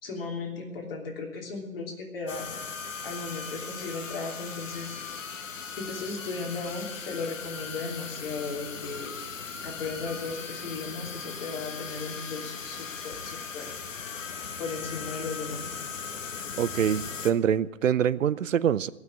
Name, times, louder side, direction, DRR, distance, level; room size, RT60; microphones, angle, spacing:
voice 1, 0.0-2.5 3.0-5.0 5.8-9.1 9.6-13.7 14.6-15.7, left 4 dB, 45° left, 3.0 m, -36 dB
sound 1, 2.3-17.3, left 5 dB, 65° left, 1.3 m, -38 dB
voice 2, 16.6-18.9, right 9 dB, 65° right, 0.6 m, -25 dB
17.5 x 6.4 x 9.7 m
hypercardioid pair, 155°, 41 cm